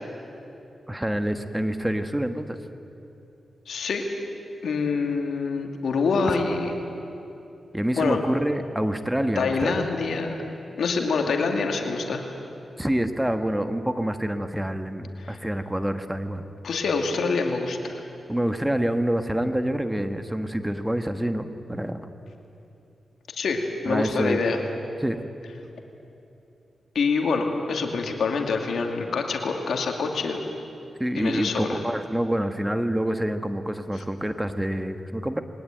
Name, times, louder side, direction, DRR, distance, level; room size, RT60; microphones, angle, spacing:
voice 1, 0.9-2.6 7.7-9.9 12.8-16.4 18.3-22.1 23.8-24.4 25.0-25.2 31.0-35.4, right 1 dB, 10° right, 8 dB, 1.4 m, -27 dB
voice 2, 3.7-4.0 4.6-6.8 7.9-8.2 9.4-10.4 10.8-12.2 15.2-15.4 16.6-18.0 23.3-24.6 26.9-30.5 31.1-31.8, left 4 dB, 80° left, 3 dB, 2.4 m, -26 dB
21.5 x 18.5 x 9.1 m, 2.8 s
cardioid pair, 55°, 0 cm